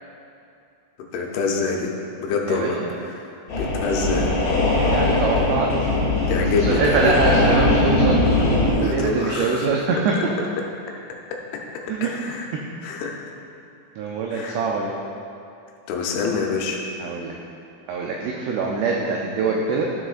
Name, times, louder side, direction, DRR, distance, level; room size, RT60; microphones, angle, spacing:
voice 1, 1.1-1.9 2.2-4.4 6.3-7.2 8.7-9.7 12.0-12.5 12.8-13.3 14.3-14.6 15.9-16.8, left 4 dB, 85° left, 0 dB, 3.2 m, -26 dB
voice 2, 2.5-2.9 4.9-5.9 6.6-8.2 8.8-10.1 11.9-12.1 12.5-12.6 14.0-14.9 17.0-17.4 17.9-19.9, right 4 dB, 85° right, -1 dB, 2.4 m, -24 dB
sound 1, 3.5-8.7, left 2 dB, 50° left, 2.3 m, -20 dB
13.0 x 6.4 x 2.5 m, 2.7 s
omnidirectional pair, 5.4 m